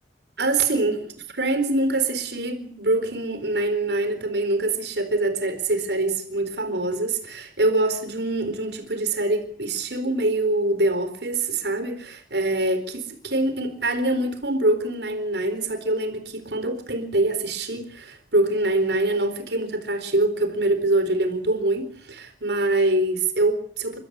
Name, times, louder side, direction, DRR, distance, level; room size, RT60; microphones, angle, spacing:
voice 1, 0.4-24.0, right 2 dB, 70° right, 4.2 m, -24 dB
30.0 x 13.5 x 8.7 m
head